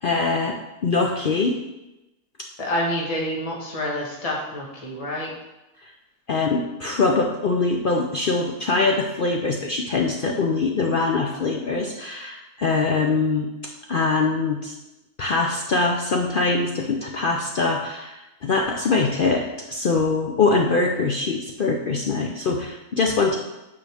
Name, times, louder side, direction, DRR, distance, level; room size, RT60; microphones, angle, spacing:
voice 1, 0.0-1.6 6.3-13.5 13.9-14.7 15.2-23.4, left 3 dB, 70° left, 1 dB, 0.5 m, -23 dB
voice 2, 2.6-5.3, left 1 dB, 25° left, -3 dB, 1.3 m, -27 dB
8.7 x 5.1 x 3.5 m, 0.98 s
omnidirectional pair, 1.6 m